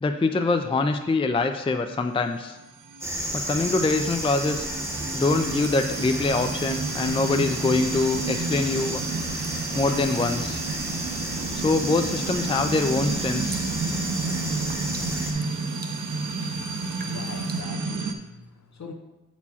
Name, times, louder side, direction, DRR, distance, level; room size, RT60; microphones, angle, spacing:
voice 1, 0.0-2.6 3.3-4.7 5.1-9.0 9.7-10.6 11.6-13.6, left 3 dB, 20° left, 7 dB, 0.4 m, -24 dB
sound 1, 2.5-18.1, right 4 dB, 75° right, 0.7 m, -31 dB
sound 2, 3.0-15.3, right 1 dB, 10° right, 1.2 m, -33 dB
sound 3, 5.0-17.6, right 3 dB, 30° right, 0.6 m, -45 dB
voice 2, 16.7-18.9, left 4 dB, 65° left, 4 dB, 0.9 m, -42 dB
8.3 x 4.4 x 4.2 m, 1.0 s
wide cardioid pair, 110°, 31 cm